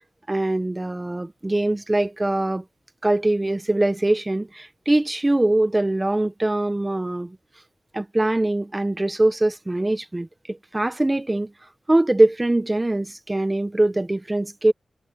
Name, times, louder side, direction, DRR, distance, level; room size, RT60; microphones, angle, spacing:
voice 1, 0.3-2.6 3.0-7.4 7.9-11.5 11.9-14.7, right 1 dB, 15° right, 0.7 m, -22 dB
wide cardioid pair, 135°, 0 cm